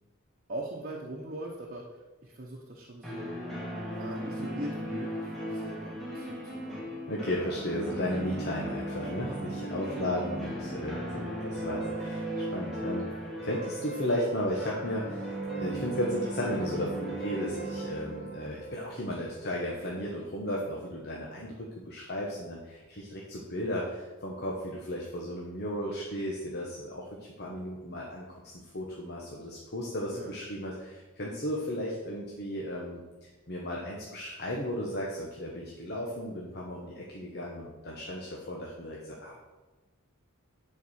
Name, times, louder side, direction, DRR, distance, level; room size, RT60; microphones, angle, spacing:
voice 1, 0.5-3.3 3.9-7.0 9.9-10.2 30.1-30.3, right 1 dB, 40° right, -3 dB, 1.1 m, -41 dB
sound 1, 3.0-19.8, right 1 dB, ahead, 1.7 m, -37 dB
voice 2, 7.1-13.1 13.4-33.0 33.5-39.4, left 1 dB, 50° left, -3 dB, 1.3 m, -35 dB
10.5 x 4.8 x 6.4 m, 1.2 s
head